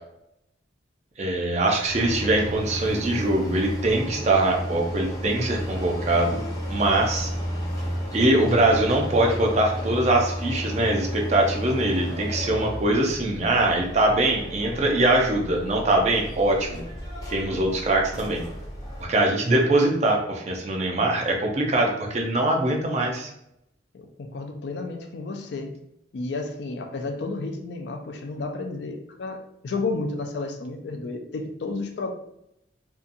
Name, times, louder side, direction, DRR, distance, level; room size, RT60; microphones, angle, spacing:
voice 1, 1.2-6.4 6.7-7.3 8.1-16.8 17.3-18.4 19.1-23.3, right 2 dB, 35° right, 1 dB, 0.4 m, -22 dB
sound 1, 1.9-19.0, equal, 20° left, 0.6 m, -33 dB
voice 2, 23.9-25.8 26.1-32.1, left 3 dB, 60° left, 5 dB, 0.3 m, -32 dB
2.7 x 2.3 x 2.5 m, 0.79 s
head